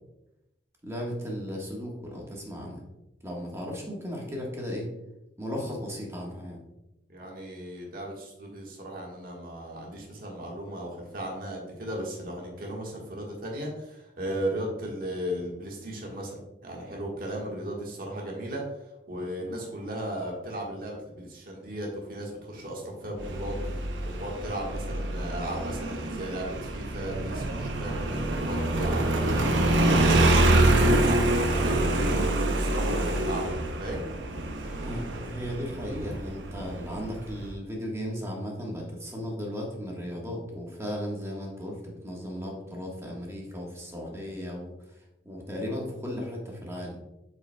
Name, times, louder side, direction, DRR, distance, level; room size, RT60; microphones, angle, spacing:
voice 1, 0.8-2.8 3.2-4.9 5.4-6.6 34.8-47.0, equal, 15° right, -2 dB, 1.3 m, -36 dB
voice 2, 7.1-16.4 16.6-18.6 19.1-30.4 30.6-34.1, right 1 dB, 55° right, -1 dB, 1.4 m, -36 dB
Motorcycle, 23.2-37.5, right 1 dB, 80° right, 0.7 m, -26 dB
7.4 x 5.7 x 2.2 m, 0.92 s
head